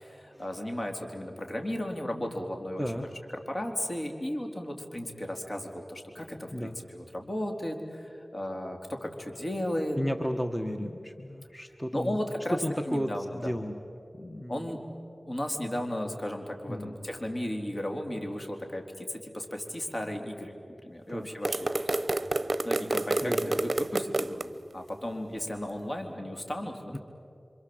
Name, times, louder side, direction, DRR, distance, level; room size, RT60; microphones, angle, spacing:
voice 1, 0.0-2.8 3.5-10.0 11.9-12.6 12.9-13.6 14.5-14.8 15.3-20.6 20.8-22.0 22.6-27.0, left 1 dB, 45° left, 3 dB, 3.8 m, -35 dB
voice 2, 9.9-12.2 12.5-13.8 14.2-14.7 16.7-17.0 21.1-21.3 23.2-23.6 26.9-27.0, equal, 10° left, 5 dB, 1.4 m, -33 dB
sound 1, 21.4-24.5, right 2 dB, 50° right, 0.8 m, -29 dB
28.0 x 25.5 x 7.9 m, 2.5 s
wide cardioid pair, 45°, 0 cm